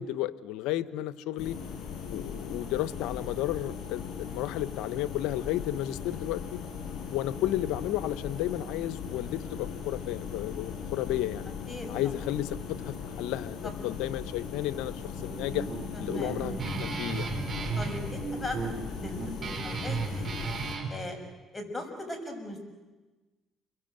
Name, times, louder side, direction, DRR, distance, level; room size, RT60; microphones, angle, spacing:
voice 1, 0.0-1.6 2.1-6.6 7.1-11.5 11.9-15.7 16.0-17.3, left 13 dB, 85° left, 16 dB, 0.9 m, -33 dB
sound 1, 1.4-20.8, left 6 dB, 65° left, 7.9 m, -39 dB
voice 2, 6.8-7.2 11.7-11.9 13.6-13.7 15.9-16.4 17.7-18.6 19.0-20.3 20.9-21.2 21.5-22.6, left 2 dB, 15° left, 4 dB, 6.5 m, -39 dB
Guitar, 15.2-20.9, right 4 dB, 40° right, 4.7 m, -34 dB
29.5 x 22.5 x 7.8 m, 1.2 s
supercardioid pair, 80°, 0 cm